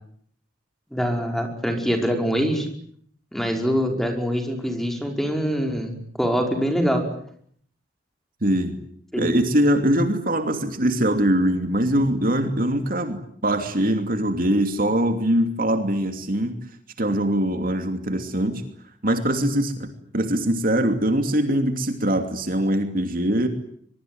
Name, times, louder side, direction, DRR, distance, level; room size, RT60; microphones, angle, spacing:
voice 1, 0.9-2.7 3.3-5.9 6.2-7.0 9.1-9.3, equal, ahead, 4 dB, 5.1 m, -24 dB
voice 2, 8.4-8.7 9.2-16.5 17.0-18.6 19.0-23.5, right 1 dB, 50° right, 6 dB, 2.8 m, -22 dB
23.5 x 23.5 x 9.4 m, 0.64 s
head